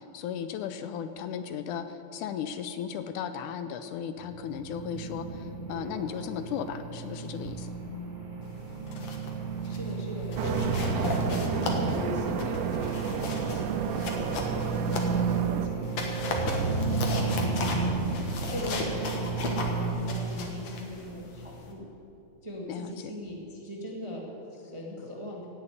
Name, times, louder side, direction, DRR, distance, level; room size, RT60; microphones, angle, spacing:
voice 1, 0.0-7.7 22.7-22.9, left 8 dB, 80° left, 10 dB, 2.0 m, -36 dB
sound 1, 4.2-19.9, right 4 dB, 60° right, 3.9 m, -32 dB
sound 2, 8.7-9.3 9.6-9.9 10.3-15.4 15.8-21.7, left 3 dB, 60° left, 2.6 m, -36 dB
voice 2, 8.8-9.1 9.4-21.9 22.4-25.5, left 1 dB, 15° right, -2 dB, 1.1 m, -40 dB
sound 3, 10.4-15.7, right 7 dB, 85° right, 2.2 m, -32 dB
16.5 x 7.0 x 9.6 m, 2.8 s
omnidirectional pair, 3.7 m